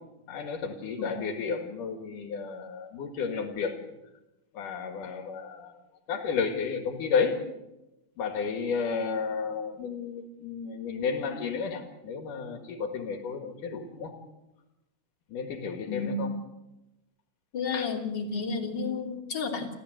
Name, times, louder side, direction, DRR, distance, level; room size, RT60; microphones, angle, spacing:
voice 1, 0.3-3.8 4.5-5.7 6.1-7.4 8.2-14.1 15.3-16.3 17.7-17.9, left 5 dB, 80° left, 6 dB, 3.4 m, -32 dB
voice 2, 15.9-16.3 17.5-19.8, left 4 dB, 35° left, 1 dB, 3.5 m, -31 dB
29.0 x 14.0 x 7.9 m, 0.97 s
omnidirectional pair, 3.7 m